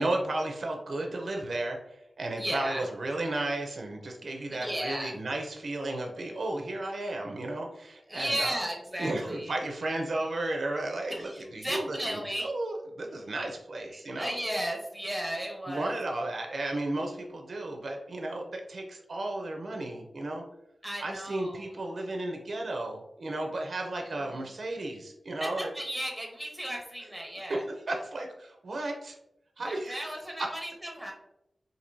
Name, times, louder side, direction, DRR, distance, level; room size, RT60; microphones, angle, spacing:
voice 1, 0.0-1.8 2.2-8.6 9.0-12.0 12.4-14.3 15.7-20.4 21.0-25.7 27.9-29.2 29.6-30.5, right 2 dB, 65° right, 2 dB, 0.6 m, -33 dB
voice 2, 2.4-2.9 4.5-5.2 8.1-9.5 11.1-12.5 13.9-16.0 20.8-21.8 24.0-24.5 25.4-27.6 29.7-31.1, equal, 5° right, 0 dB, 1.0 m, -35 dB
4.4 x 2.7 x 2.6 m, 0.84 s
wide cardioid pair, 100°, 0 cm